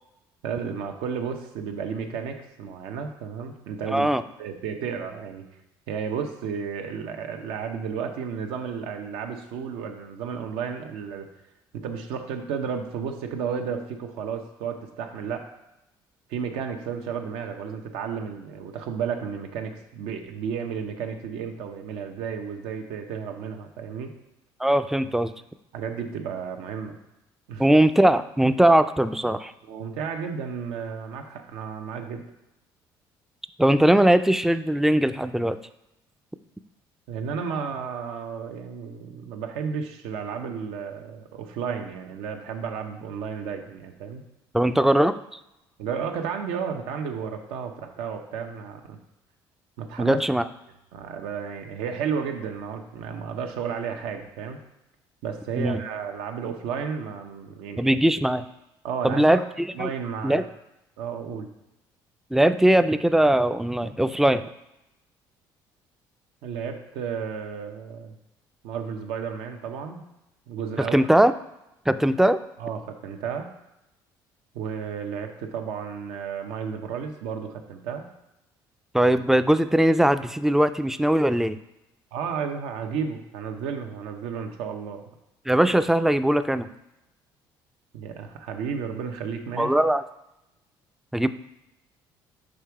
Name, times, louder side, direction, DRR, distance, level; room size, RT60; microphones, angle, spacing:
voice 1, 0.4-4.1 4.4-5.5 5.9-11.3 11.7-15.4 16.3-24.1 25.7-27.0 27.5-27.7 29.6-32.2 37.1-44.2 45.8-49.0 49.8-50.2 50.9-54.6 55.2-57.9 58.8-59.4 59.7-60.5 61.0-61.5 66.4-68.2 68.6-70.0 70.5-71.1 72.2-72.3 72.6-73.5 74.5-78.0 82.1-85.0 87.9-89.7, right 6 dB, 85° right, 5 dB, 0.8 m, -32 dB
voice 2, 3.9-4.2 24.6-25.3 27.6-29.5 33.6-35.6 44.5-45.2 50.0-50.4 55.6-55.8 57.8-58.4 59.0-59.9 60.2-60.4 62.3-64.4 70.9-71.3 71.9-72.4 78.9-81.6 85.5-86.7 89.6-90.0 91.1-91.3, right 1 dB, 5° right, 12 dB, 0.3 m, -20 dB
6.6 x 3.5 x 4.6 m, 0.90 s
supercardioid pair, 95°, 9 cm